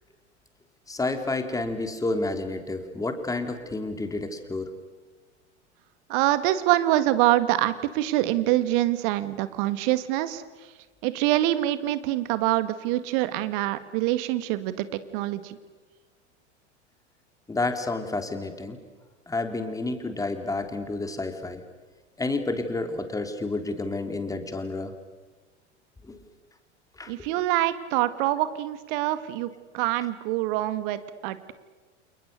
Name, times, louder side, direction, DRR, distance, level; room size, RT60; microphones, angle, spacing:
voice 1, 0.9-4.7 17.5-18.8 19.3-21.6 22.2-24.9 26.1-26.2 27.0-27.3, left 2 dB, 10° left, 6 dB, 3.3 m, -30 dB
voice 2, 6.1-10.4 11.0-15.6 27.1-31.5, right 15 dB, 45° right, 13 dB, 2.0 m, -25 dB
29.5 x 28.5 x 6.8 m, 1.3 s
figure-of-eight pair, 85°, 35 cm